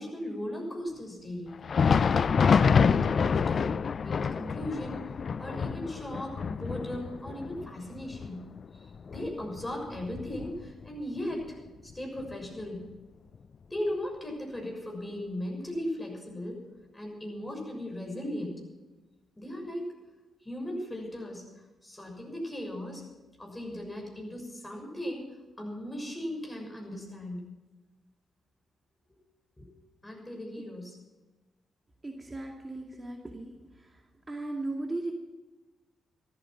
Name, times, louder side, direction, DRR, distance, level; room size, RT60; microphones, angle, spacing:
voice 1, 0.0-1.5 2.7-3.7 4.0-8.5 8.7-11.6 11.9-12.8 13.7-16.6 16.9-18.6 19.4-20.0 20.4-21.5 21.8-23.0 23.4-25.3 25.6-27.4 29.6-29.7 30.0-31.0, left 1 dB, 20° left, 1 dB, 6.5 m, -37 dB
Thunder, 1.5-11.0 11.3-11.5 12.2-12.4 13.3-13.4, left 6 dB, 55° left, 0.4 m, -27 dB
voice 2, 32.0-34.0 34.3-35.1, right 2 dB, 30° right, 1 dB, 2.3 m, -37 dB
13.5 x 13.5 x 6.0 m, 1.2 s
hypercardioid pair, 40°, 0 cm